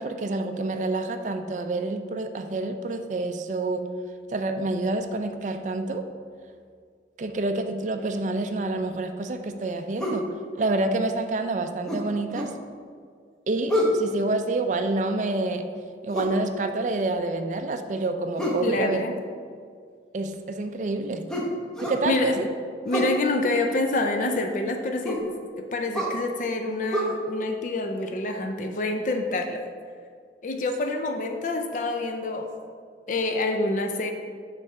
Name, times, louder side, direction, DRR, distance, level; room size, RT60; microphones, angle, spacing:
voice 1, 0.0-3.9 4.3-6.1 7.2-10.3 10.6-12.5 13.5-15.7 16.0-19.1 20.1-21.3 21.8-22.5, right 2 dB, 45° right, 7 dB, 0.4 m, -28 dB
sound 1, 10.0-10.3 11.9-12.6 13.7-14.0 16.1-16.4 18.4-18.7 21.3-22.0 22.9-23.2 25.0-25.3 25.9-26.2 26.9-27.0, equal, 5° left, 0.8 m, -27 dB
voice 2, 18.6-19.1 22.1-22.3 22.9-25.2 25.6-29.6 30.4-32.5 33.1-34.1, left 2 dB, 45° left, 4 dB, 0.4 m, -27 dB
6.3 x 3.3 x 5.7 m, 2.1 s
head